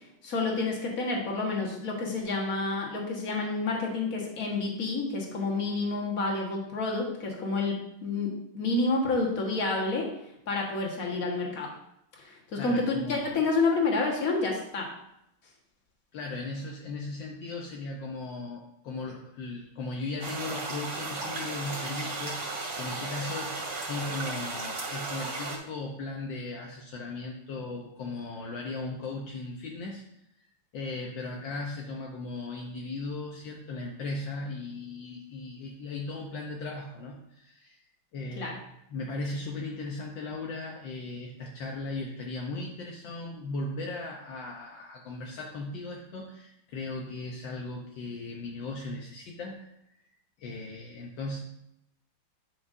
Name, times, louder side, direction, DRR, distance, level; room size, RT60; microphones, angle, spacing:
voice 1, 0.2-10.1 10.5-11.7 12.2-14.9 38.4-38.6, left 3 dB, 45° left, -1 dB, 1.8 m, -29 dB
voice 2, 12.6-13.3 16.1-22.4 22.8-30.0 30.7-37.8 38.1-38.6 38.9-49.7 50.4-51.4, left 2 dB, 70° left, -1 dB, 1.5 m, -37 dB
Rain Sound and Forest and Nature Sounds, 20.2-25.6, right 3 dB, 40° right, 2.7 m, -35 dB
11.0 x 5.9 x 2.6 m, 0.80 s
omnidirectional pair, 2.2 m